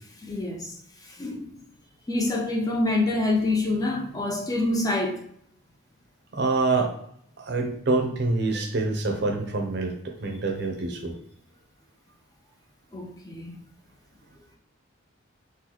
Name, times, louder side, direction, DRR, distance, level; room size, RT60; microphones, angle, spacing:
voice 1, 0.2-0.7 1.2-1.6 2.1-5.2 12.9-13.6, left 2 dB, 20° left, 0.4 m, -26 dB
voice 2, 6.3-6.9 7.4-11.1, right 3 dB, 55° right, 0.6 m, -26 dB
3.9 x 2.2 x 3.0 m
head